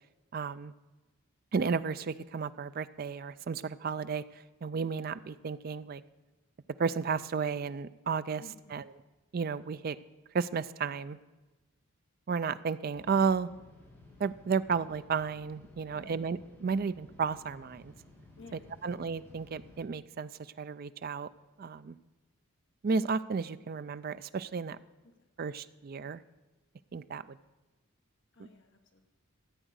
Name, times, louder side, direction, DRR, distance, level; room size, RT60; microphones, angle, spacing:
voice 1, 0.3-0.7 1.5-4.2 4.6-6.0 6.8-8.4 8.7-8.9 9.3-10.0 10.3-11.2 12.3-13.5 14.2-17.9 18.8-20.3 20.6-21.3 21.6-22.0 22.8-24.8 25.4-26.2 26.9-27.4 28.4-28.5, right 5 dB, 40° right, 14 dB, 0.3 m, -33 dB
voice 2, 8.4-8.8 15.9-16.2 18.4-19.1 25.4-25.5 28.3-29.0, left 3 dB, 55° left, 5 dB, 1.2 m, -55 dB
sound 1, 12.9-19.8, left 2 dB, 10° left, 2.8 m, -56 dB
13.5 x 8.0 x 6.4 m, 1.2 s
head